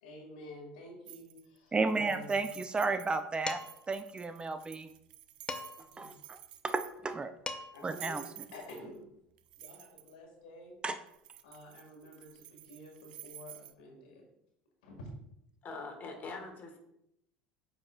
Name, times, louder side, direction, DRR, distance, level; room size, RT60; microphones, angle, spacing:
voice 1, 0.0-2.3 5.9-6.2 7.7-8.2 8.5-9.1 9.5-10.8 11.4-14.2 14.8-15.1, left 1 dB, 80° left, 1 dB, 1.8 m, -50 dB
sound 1, 1.1-1.6 1.9-7.1 7.7-9.0 9.4-10.1 11.1-13.7, right 13 dB, 80° right, 0.4 m, -51 dB
voice 2, 1.7-3.6 3.9-4.9 6.0-7.3 7.8-8.2 10.8-11.0, right 3 dB, 20° right, 10 dB, 0.5 m, -33 dB
Dishes pots and pans, 3.5-3.9 5.5-6.0 7.1-7.2 7.5-7.9, left 3 dB, 20° left, 0.6 m, -40 dB
voice 3, 15.6-16.8, left 3 dB, 40° left, 3 dB, 1.7 m, -43 dB
8.4 x 4.9 x 2.3 m, 0.78 s
hypercardioid pair, 75°, 5 cm